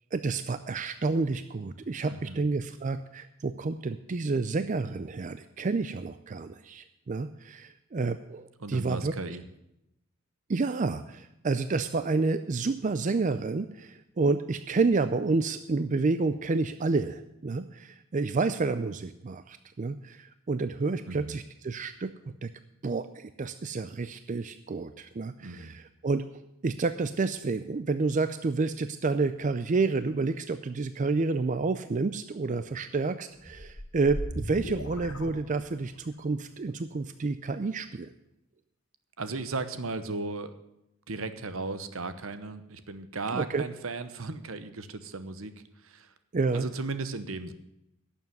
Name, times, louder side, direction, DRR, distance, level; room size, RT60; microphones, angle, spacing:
voice 1, 0.1-9.4 10.5-22.1 22.4-22.5 22.8-26.2 26.6-38.1 43.3-43.6 46.3-46.7, right 3 dB, 35° right, 11 dB, 0.4 m, -29 dB
voice 2, 2.1-2.4 8.6-9.4 21.1-21.4 25.4-25.8 39.2-40.6 41.1-45.5 45.8-46.1 46.5-47.5, right 3 dB, 70° right, 11 dB, 1.0 m, -36 dB
sound 1, 33.4-36.1, equal, 90° left, 1.8 m, -38 dB
11.5 x 7.1 x 9.3 m, 0.85 s
head